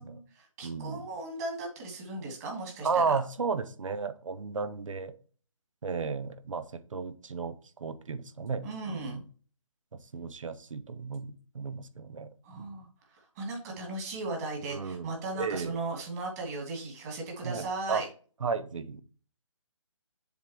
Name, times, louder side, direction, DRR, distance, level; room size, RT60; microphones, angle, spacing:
voice 1, 0.0-3.2 8.6-9.2 12.4-18.1, right 2 dB, 30° right, 1 dB, 2.5 m, -37 dB
voice 2, 0.6-1.0 2.8-5.1 5.8-6.6 6.9-9.2 9.9-12.3 12.6-12.7 14.7-15.1 15.4-15.8 17.4-18.0 18.4-19.0, right 5 dB, 70° right, 12 dB, 0.9 m, -33 dB
7.2 x 3.8 x 4.6 m, 0.41 s
hypercardioid pair, 155°, 17 cm